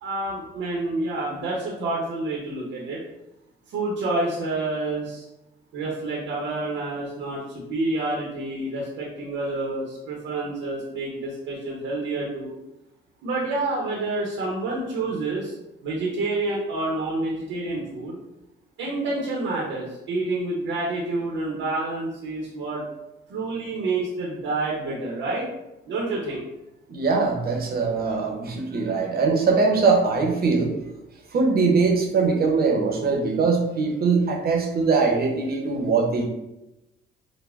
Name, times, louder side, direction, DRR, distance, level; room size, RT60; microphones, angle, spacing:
voice 1, 0.0-3.0 3.7-5.2 5.7-12.6 13.2-15.6 15.8-18.2 18.8-22.8 23.3-25.5 25.9-26.4, right 2 dB, 85° right, -3 dB, 0.8 m, -28 dB
voice 2, 26.9-30.7 31.3-36.2, right 4 dB, 50° right, 2 dB, 0.8 m, -22 dB
5.1 x 2.1 x 2.4 m, 0.93 s
cardioid pair, 90°, 20 cm